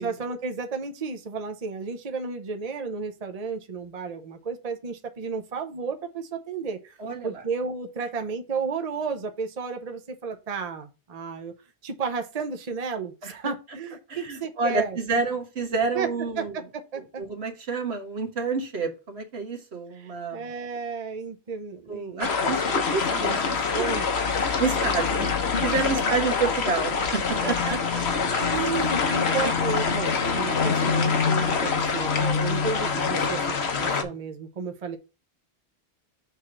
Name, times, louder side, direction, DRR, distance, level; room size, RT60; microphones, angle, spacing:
voice 1, 0.0-7.0 7.2-11.5 11.8-15.0 15.9-16.1 16.4-17.2 19.9-22.6 23.5-24.1 24.7-25.3 26.1-26.2 27.4-27.5 28.4-35.0, right 5 dB, 40° right, 6 dB, 0.8 m, -33 dB
voice 2, 7.0-7.4 13.2-13.3 14.1-16.5 17.2-20.5 21.9-23.9 24.6-25.2 25.6-28.1, right 4 dB, 85° right, 4 dB, 1.6 m, -29 dB
sound 1, 22.2-34.0, left 5 dB, 85° left, 1.3 m, -25 dB
6.6 x 3.2 x 5.9 m, 0.30 s
omnidirectional pair, 1.1 m